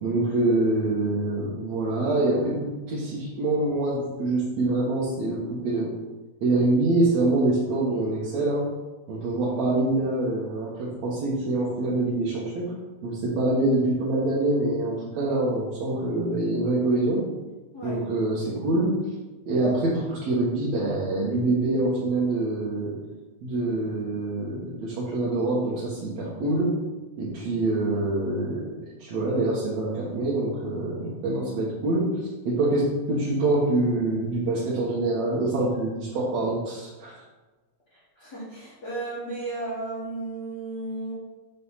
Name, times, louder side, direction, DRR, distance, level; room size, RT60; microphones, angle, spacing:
voice 1, 0.0-5.9 6.4-8.6 9.1-12.7 13.0-17.2 17.8-18.9 19.5-22.9 23.4-26.7 27.2-28.7 29.0-32.0 32.5-37.1, right 2 dB, 60° right, -7 dB, 2.0 m, -25 dB
voice 2, 37.9-41.1, right 2 dB, 40° left, -8 dB, 1.6 m, -34 dB
6.6 x 4.1 x 5.6 m, 1.2 s
omnidirectional pair, 4.4 m